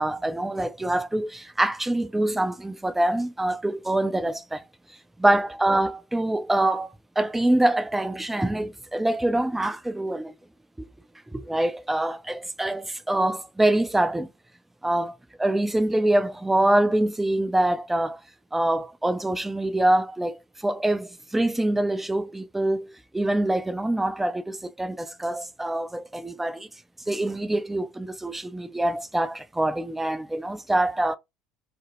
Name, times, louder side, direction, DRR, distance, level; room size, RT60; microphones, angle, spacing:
voice 1, 0.0-4.6 5.2-10.3 10.8-10.9 11.3-14.3 14.8-18.2 18.5-26.7 27.1-31.2, right 1 dB, 10° right, 0.4 m, -25 dB
3.3 x 2.0 x 2.4 m
hypercardioid pair, 70°, 3 cm